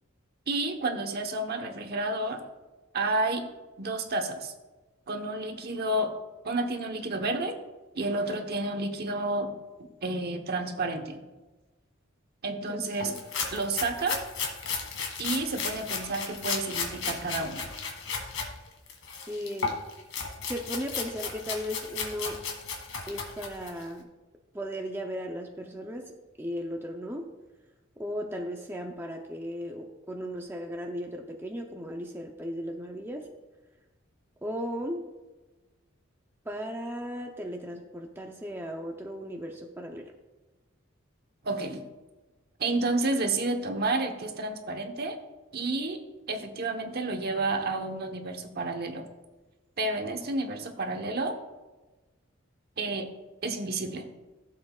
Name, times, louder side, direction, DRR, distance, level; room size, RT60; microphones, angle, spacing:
voice 1, 0.5-2.4 2.9-3.5 3.8-4.5 5.1-6.1 6.4-7.6 7.9-9.5 10.0-11.2 12.4-13.1 13.5-14.2 15.2-17.7 41.4-41.8 42.6-45.2 45.5-46.0 46.3-49.0 49.8-51.4 52.8-53.1 53.4-54.1, right 2 dB, 50° right, 5 dB, 1.0 m, -30 dB
voice 2, 12.5-13.2 19.3-19.8 20.4-22.5 23.1-24.1 24.5-26.1 26.4-27.3 28.0-33.3 34.4-35.1 36.4-40.1, equal, 10° right, 1 dB, 0.6 m, -36 dB
sound 1, 13.0-18.5 18.9-23.8, left 5 dB, 80° left, 1.8 m, -34 dB
15.5 x 7.6 x 2.4 m, 1.2 s
head